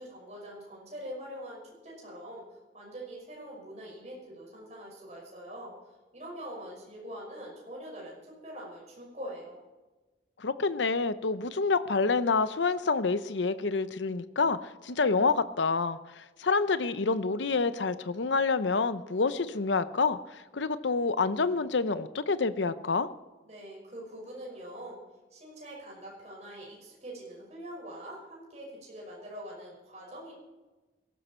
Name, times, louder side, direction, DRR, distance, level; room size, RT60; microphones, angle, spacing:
voice 1, 0.0-5.7 6.1-9.6 23.4-25.0 25.3-30.3, equal, 40° right, -3 dB, 5.8 m, -44 dB
voice 2, 10.4-23.1, left 4 dB, 85° left, 13 dB, 0.8 m, -28 dB
17.5 x 14.0 x 4.5 m, 1.2 s
head